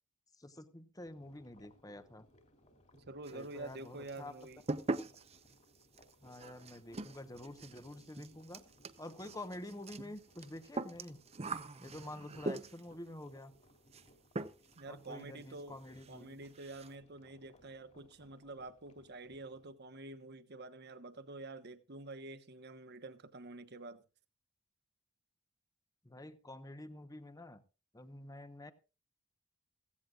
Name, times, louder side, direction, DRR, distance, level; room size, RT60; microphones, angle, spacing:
voice 1, 0.4-2.3 3.3-4.3 6.2-8.6 9.0-11.2 11.8-13.5 14.9-16.4 26.0-27.6 27.9-28.7, left 1 dB, 15° left, 1.0 m, -48 dB
sound 1, 1.1-19.7, left 1 dB, 35° left, 3.1 m, -66 dB
voice 2, 2.9-4.6 14.8-15.8 16.1-24.0, right 2 dB, 50° right, 1.2 m, -48 dB
sound 2, 3.2-3.8 4.1-13.0 13.9-14.1 14.3-14.8 15.1-15.2 15.6-15.7 16.0-16.1 16.4-16.9, right 2 dB, 30° right, 0.7 m, -42 dB
16.0 x 16.0 x 2.5 m
head